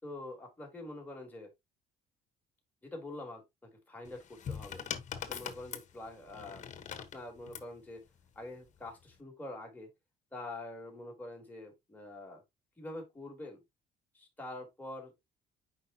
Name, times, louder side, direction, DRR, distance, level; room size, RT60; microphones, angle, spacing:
voice 1, 0.0-1.5 2.8-4.9 5.1-6.7 7.0-8.1 8.4-9.9 10.3-12.4 12.8-13.6 14.1-15.2, left 2 dB, 10° left, 3.7 m, -45 dB
sound 1, 4.0-7.7 8.8-9.2, left 8 dB, 45° left, 1.2 m, -42 dB
8.2 x 5.2 x 2.8 m
cardioid pair, 110°, 17 cm